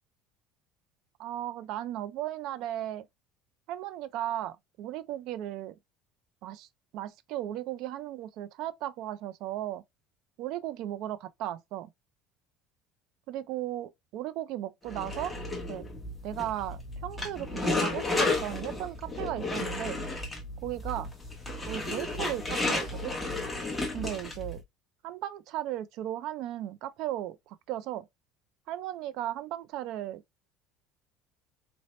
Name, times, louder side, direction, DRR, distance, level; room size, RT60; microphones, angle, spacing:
voice 1, 1.2-3.1 3.7-5.8 6.4-9.8 10.4-11.9 13.3-15.4 15.7-15.8 16.2-20.0 20.6-21.1 21.7-23.1 23.9-24.6 25.0-28.1 28.7-30.2, right 13 dB, 50° right, 0.4 m, -36 dB
sound 1, 14.9-24.6, left 2 dB, 5° left, 0.9 m, -33 dB
4.2 x 2.1 x 3.0 m
cardioid pair, 170°, 0 cm